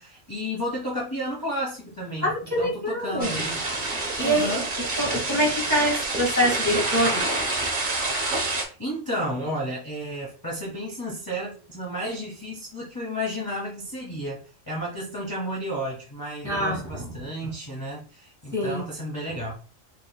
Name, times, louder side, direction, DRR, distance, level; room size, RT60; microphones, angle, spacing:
voice 1, 0.0-3.6 4.2-5.0 8.4-19.6, equal, 20° left, -5 dB, 0.9 m, -32 dB
voice 2, 2.2-3.4 4.2-4.6 5.0-7.2 16.4-17.0 18.5-18.8, equal, 15° right, -3 dB, 1.6 m, -25 dB
sound 1, 3.2-8.6, right 2 dB, 40° right, 0.9 m, -27 dB
5.2 x 3.0 x 2.2 m, 0.37 s
omnidirectional pair, 1.4 m